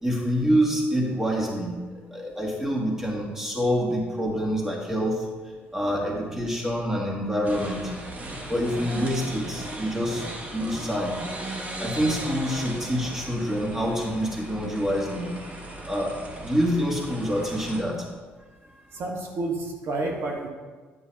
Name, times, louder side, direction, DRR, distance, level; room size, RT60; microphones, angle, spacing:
voice 1, 0.0-1.8 2.1-5.3 5.7-7.9 8.5-10.3 10.5-11.2 11.8-15.3 15.9-18.0, equal, 10° right, -3 dB, 2.3 m, -26 dB
sound 1, 7.4-17.8, right 1 dB, 30° right, 1.4 m, -37 dB
voice 2, 18.9-20.5, right 2 dB, 60° right, 0 dB, 1.5 m, -30 dB
9.8 x 6.9 x 2.9 m, 1.4 s
supercardioid pair, 75°, 5 cm